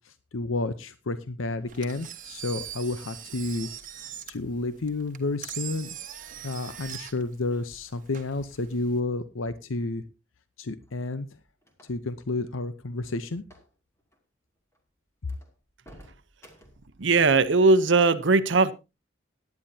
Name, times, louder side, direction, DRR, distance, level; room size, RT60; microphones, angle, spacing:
voice 1, 0.0-3.7 4.0-6.0 6.4-10.0 10.6-11.4 11.9-13.4, left 2 dB, 85° left, 0.8 m, -31 dB
Engine, 1.7-9.0, right 10 dB, 40° right, 1.4 m, -42 dB
sound 1, 10.8-12.2 13.4-13.7 14.0-14.2 14.7-14.8 15.3-16.9, equal, 15° left, 2.6 m, -53 dB
voice 2, 17.0-18.7, right 3 dB, 65° right, 0.8 m, -19 dB
18.0 x 10.5 x 2.8 m
head